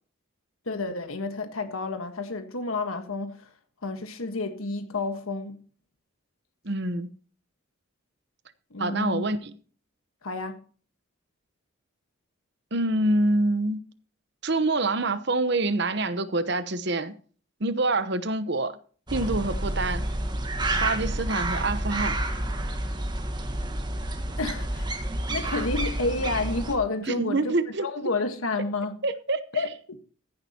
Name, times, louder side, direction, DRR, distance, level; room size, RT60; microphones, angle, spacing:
voice 1, 0.7-3.5 3.8-5.6 8.7-9.3 10.2-10.6 24.4-24.9 25.3-27.5 27.8-29.0 29.5-30.0, left 3 dB, 80° left, 1.4 m, -30 dB
voice 2, 6.6-7.2 8.8-9.5 12.7-13.8 14.4-17.1 17.6-18.8 19.1-20.1 20.8-22.2 27.0-27.9 29.0-29.6, right 2 dB, 50° right, 1.0 m, -26 dB
sound 1, 19.1-26.7, right 1 dB, 20° right, 1.4 m, -29 dB
15.0 x 11.0 x 2.9 m
head